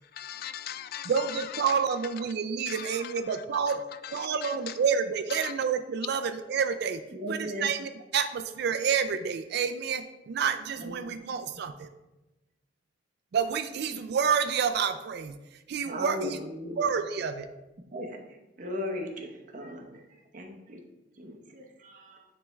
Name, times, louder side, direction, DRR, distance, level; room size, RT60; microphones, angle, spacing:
voice 1, 0.0-1.8 2.7-3.4 4.0-4.8 5.3-5.5, left 10 dB, 55° left, 13 dB, 0.3 m, -40 dB
voice 2, 1.1-3.8 4.1-7.0 7.3-11.9 13.3-15.4 15.7-16.4 16.8-17.5, right 6 dB, 60° right, 9 dB, 0.4 m, -29 dB
voice 3, 7.1-7.7 10.7-11.0 15.8-16.9 17.8-18.2 18.6-20.0 20.3-20.8 21.2-22.2, left 1 dB, 45° right, 2 dB, 0.9 m, -37 dB
10.0 x 3.4 x 3.2 m, 1.0 s
head